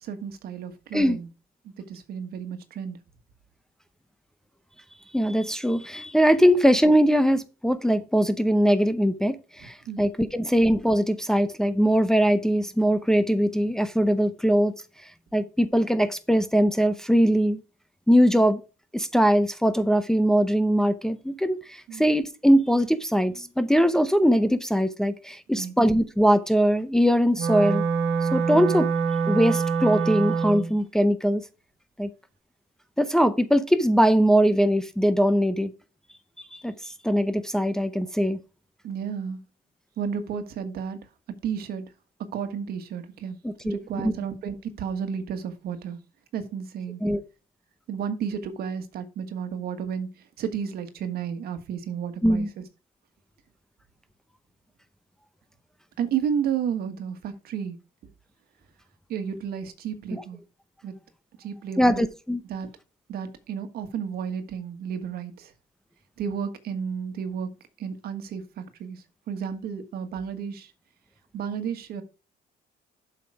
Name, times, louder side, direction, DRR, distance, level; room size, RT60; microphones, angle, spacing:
voice 1, 0.0-1.3 1.9-3.0 9.6-10.1 18.2-18.4 21.9-22.1 25.6-25.7 38.8-39.4 40.0-41.0 41.4-41.9 42.3-43.4 43.6-46.0 46.3-47.0 47.9-52.6 56.0-57.8 59.1-60.4 60.8-60.9 61.4-62.1 62.5-62.7 63.1-65.5 66.2-67.5 67.8-70.7 71.3-72.0, right 7 dB, 65° right, 1.5 m, -32 dB
voice 2, 5.1-14.7 15.3-17.6 18.1-18.6 18.9-27.8 28.3-28.9 29.3-31.4 32.0-32.1 33.0-35.7 36.5-38.4 43.4-44.1 47.0-47.2 52.2-52.5 60.1-60.2 61.8-62.4, equal, 5° left, 0.7 m, -21 dB
Wind instrument woodwind instrument, 27.3-30.7, right 5 dB, 80° right, 1.5 m, -25 dB
7.6 x 5.7 x 4.8 m
cardioid pair, 110°, 17 cm